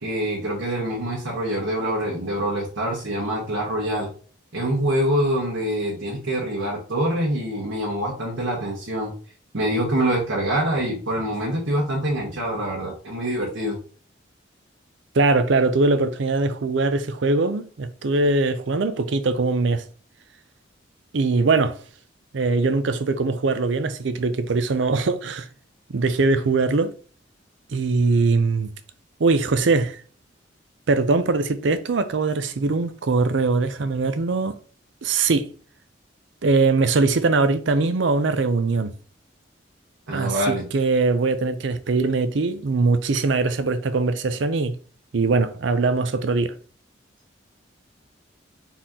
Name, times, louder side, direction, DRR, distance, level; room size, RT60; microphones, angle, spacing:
voice 1, 0.0-4.1 4.5-9.1 9.5-13.8 40.1-40.6, right 1 dB, 90° right, 1.3 m, -25 dB
voice 2, 15.1-19.8 21.1-21.8 22.3-25.5 25.9-26.9 27.7-28.7 29.2-30.0 30.9-34.6 35.0-35.5 36.4-38.9 40.1-44.7 45.1-46.5, right 3 dB, 70° right, 0.5 m, -21 dB
4.2 x 2.8 x 3.7 m
head